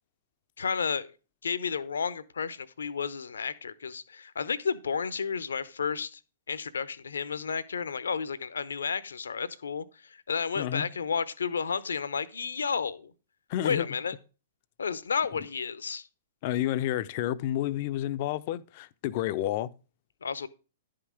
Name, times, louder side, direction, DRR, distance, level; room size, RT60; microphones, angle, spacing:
voice 1, 0.6-1.1 1.4-6.2 6.5-13.1 13.6-14.2 14.8-16.1 20.2-20.5, left 6 dB, 75° left, 0.8 m, -32 dB
voice 2, 10.6-10.9 13.5-13.9 16.4-19.7, left 13 dB, 50° left, 0.6 m, -30 dB
11.0 x 5.8 x 4.8 m
figure-of-eight pair, 110°, 0 cm